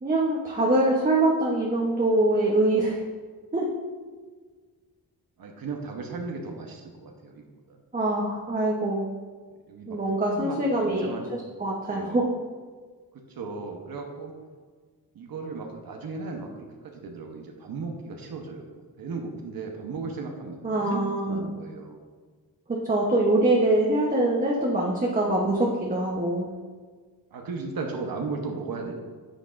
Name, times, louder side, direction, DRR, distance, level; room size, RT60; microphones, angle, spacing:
voice 1, 0.0-3.0 3.5-3.7 7.9-9.2 9.9-12.2 20.6-21.4 22.7-26.5, right 1 dB, 20° right, -3 dB, 0.9 m, -24 dB
voice 2, 5.4-7.8 9.7-10.0 10.3-11.3 11.9-12.2 13.1-14.3 15.1-18.7 19.0-22.0 27.3-29.0, right 4 dB, 65° right, 2 dB, 1.0 m, -36 dB
10.0 x 5.9 x 2.5 m, 1.5 s
cardioid pair, 115°, 38 cm